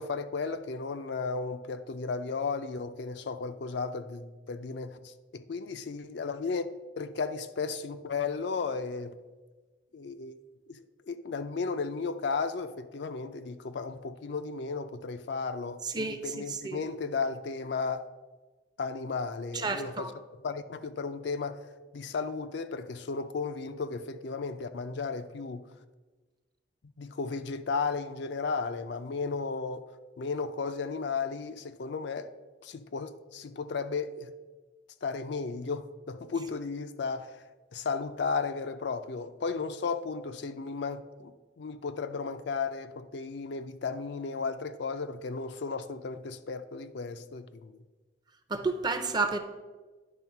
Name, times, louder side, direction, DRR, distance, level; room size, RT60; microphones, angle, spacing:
voice 1, 0.0-9.2 9.9-10.4 10.7-18.1 18.8-20.1 20.4-21.6 21.9-25.7 27.0-29.8 30.2-32.3 32.6-34.3 35.0-47.7, left 4 dB, 65° left, 0.4 m, -34 dB
voice 2, 15.8-16.8 19.5-20.1 48.5-49.4, right 3 dB, 20° right, 0.5 m, -31 dB
10.5 x 3.5 x 5.8 m
head